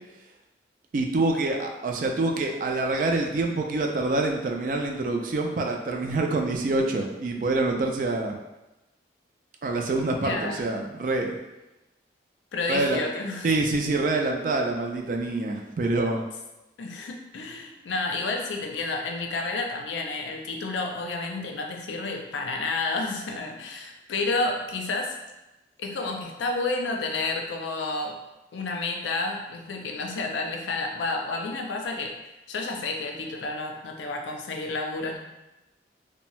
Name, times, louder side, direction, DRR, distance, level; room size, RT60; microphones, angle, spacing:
voice 1, 0.9-8.4 9.6-11.4 12.7-13.0 13.4-16.2, right 2 dB, 45° right, 2 dB, 0.3 m, -26 dB
voice 2, 10.2-10.6 12.5-13.5 16.8-25.1 25.8-28.2 28.5-32.1 32.5-35.2, left 3 dB, 90° left, 2 dB, 0.4 m, -30 dB
2.6 x 2.1 x 3.0 m, 1.0 s
head